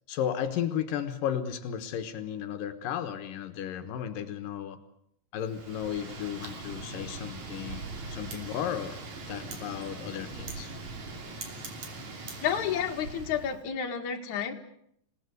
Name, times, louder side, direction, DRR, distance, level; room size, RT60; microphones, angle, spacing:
voice 1, 0.1-4.8 5.3-9.0 9.3-10.7, left 9 dB, 85° left, 8 dB, 2.9 m, -34 dB
Wind, 5.4-13.6, right 3 dB, 60° right, 4.3 m, -41 dB
voice 2, 12.4-14.5, left 8 dB, 65° left, 3 dB, 3.2 m, -30 dB
28.0 x 18.5 x 9.5 m, 0.73 s
omnidirectional pair, 3.8 m